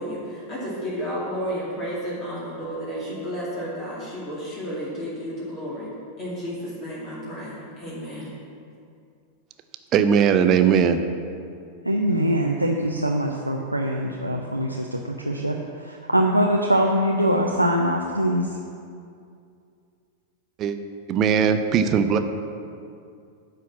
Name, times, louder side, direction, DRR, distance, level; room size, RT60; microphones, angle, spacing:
voice 1, 0.0-5.9 6.2-8.3, equal, 25° left, -8 dB, 2.3 m, -32 dB
voice 2, 9.9-11.0 20.6-20.8 21.1-22.2, right 7 dB, 35° right, 8 dB, 0.6 m, -19 dB
voice 3, 11.8-18.6, equal, 90° right, 0 dB, 0.6 m, -23 dB
10.0 x 4.6 x 7.2 m, 2.4 s
figure-of-eight pair, 90°, 0 cm